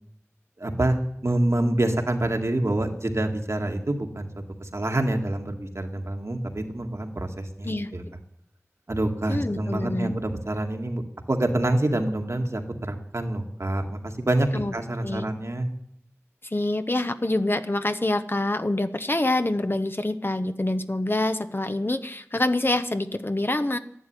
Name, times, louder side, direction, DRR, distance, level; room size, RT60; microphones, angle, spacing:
voice 1, 0.6-4.3 4.6-8.0 8.9-11.0 11.3-14.5 14.7-15.7, right 1 dB, 60° right, 4 dB, 2.0 m, -26 dB
voice 2, 9.3-10.1 14.5-14.7 15.0-15.3 16.5-23.8, left 2 dB, 45° left, 10 dB, 1.0 m, -26 dB
13.0 x 11.0 x 9.8 m, 0.70 s
wide cardioid pair, 45°, 5 cm